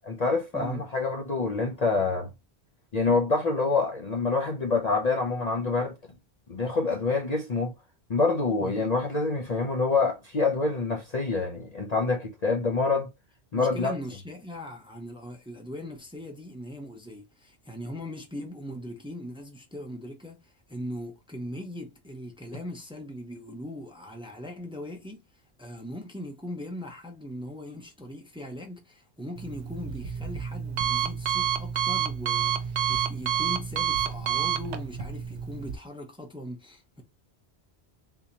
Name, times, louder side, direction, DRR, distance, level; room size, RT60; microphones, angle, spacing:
voice 1, 0.0-2.3 2.9-5.9 6.5-7.7 8.1-13.1 13.5-13.9, left 3 dB, 45° left, 0.6 m, -26 dB
voice 2, 0.5-0.9 8.6-8.9 13.5-25.2 25.6-37.0, left 1 dB, 5° right, 0.7 m, -40 dB
Alarm, 29.4-35.8, right 9 dB, 85° right, 0.9 m, -29 dB
3.7 x 2.8 x 2.8 m
omnidirectional pair, 1.1 m